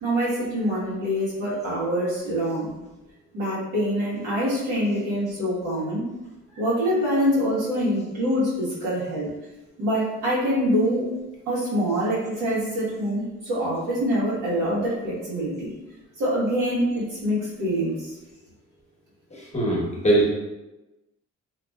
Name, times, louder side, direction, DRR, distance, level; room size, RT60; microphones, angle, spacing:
voice 1, 0.0-2.8 3.3-6.1 6.5-9.3 9.8-11.1 11.5-15.7 16.2-18.2, equal, 85° right, -8 dB, 1.4 m, -25 dB
voice 2, 19.5-20.3, right 1 dB, 20° left, -4 dB, 0.9 m, -20 dB
2.8 x 2.6 x 2.3 m, 1.0 s
cardioid pair, 90°, 30 cm